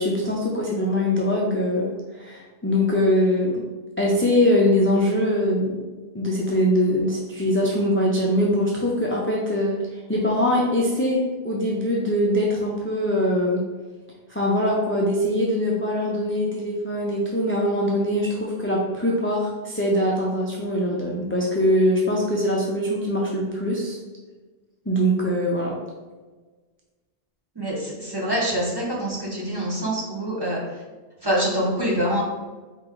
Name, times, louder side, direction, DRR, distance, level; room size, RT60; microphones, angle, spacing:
voice 1, 0.0-3.6 4.0-5.8 6.1-13.6 14.3-24.0 24.9-25.8, left 1 dB, 20° left, -3 dB, 0.4 m, -22 dB
voice 2, 27.5-30.8 31.2-32.2, equal, 25° right, -5 dB, 1.0 m, -25 dB
4.5 x 3.0 x 3.7 m, 1.3 s
omnidirectional pair, 1.1 m